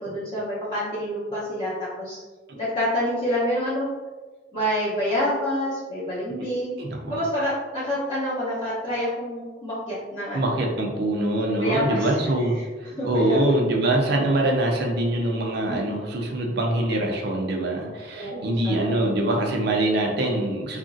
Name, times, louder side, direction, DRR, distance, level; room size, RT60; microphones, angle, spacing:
voice 1, 0.0-2.2 2.5-3.9 4.5-6.7 7.1-10.5 11.5-12.2 13.0-13.4 15.7-16.0 18.1-18.9, equal, 30° left, -11 dB, 0.8 m, -27 dB
voice 2, 6.8-7.2 10.3-20.8, right 1 dB, 60° right, 1 dB, 0.5 m, -24 dB
2.9 x 2.5 x 2.6 m, 1.3 s
head